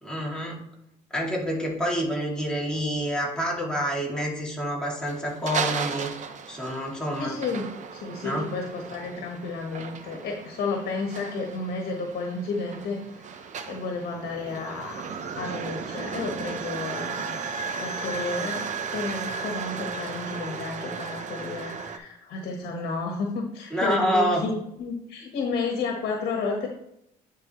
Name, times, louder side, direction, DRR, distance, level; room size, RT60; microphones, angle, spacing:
voice 1, 0.0-0.6 1.1-6.1 6.5-7.3 8.2-8.4 19.7-19.9 23.7-24.4, equal, 5° left, -4 dB, 2.5 m, -27 dB
sound 1, 5.0-22.0, right 5 dB, 45° right, 0.8 m, -35 dB
voice 2, 7.2-15.1 15.4-17.4 17.8-26.7, left 4 dB, 65° left, 2 dB, 1.3 m, -32 dB
9.9 x 4.7 x 3.0 m, 0.81 s
cardioid pair, 110°, 17 cm